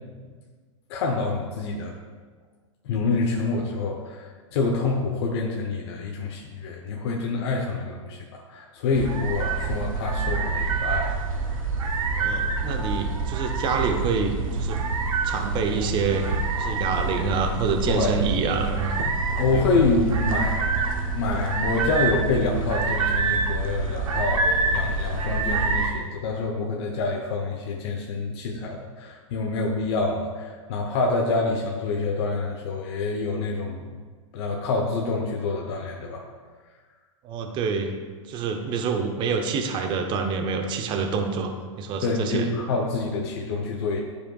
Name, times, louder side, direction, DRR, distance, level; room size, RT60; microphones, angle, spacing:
voice 1, 0.9-1.9 2.8-11.7 17.9-18.2 19.4-20.7 21.0-33.8 34.3-36.2 42.0-44.0, left 3 dB, 55° left, 0 dB, 0.8 m, -27 dB
sound 1, 8.9-25.9, right 4 dB, 85° right, 0.8 m, -26 dB
voice 2, 12.2-14.8 15.2-16.2 16.6-19.0 19.5-19.7 37.2-37.9 38.3-42.5, right 5 dB, 30° right, 5 dB, 0.7 m, -27 dB
10.5 x 4.8 x 2.3 m, 1.5 s
hypercardioid pair, 125°, 17 cm